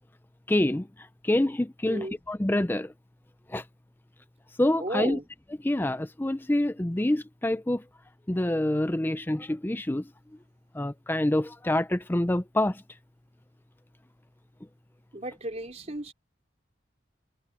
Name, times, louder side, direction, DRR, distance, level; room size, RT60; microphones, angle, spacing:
voice 1, 0.5-2.9 3.5-3.6 4.6-5.2 5.6-7.8 8.3-10.1 10.7-12.8, left 1 dB, 10° left, 0.5 m, -26 dB
voice 2, 1.9-2.2 4.8-5.2 15.1-16.1, right 1 dB, 35° right, 3.7 m, -34 dB
head